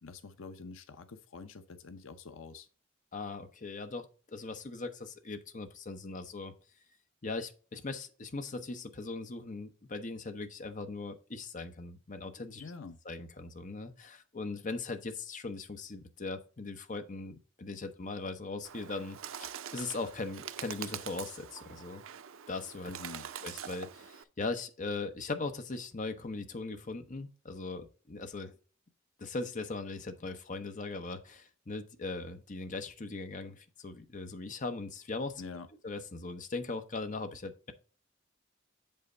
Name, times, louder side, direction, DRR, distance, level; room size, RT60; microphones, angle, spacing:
voice 1, 0.0-2.7 12.6-13.0 22.9-23.3 35.4-35.7, left 4 dB, 70° left, 0.7 m, -46 dB
voice 2, 3.1-6.5 7.2-12.6 13.0-22.0 22.5-22.9 23.4-28.5 29.2-35.4 35.8-37.7, left 3 dB, 40° left, 0.9 m, -39 dB
Bird, 18.6-24.2, right 9 dB, 85° right, 0.5 m, -44 dB
7.4 x 5.5 x 3.9 m
head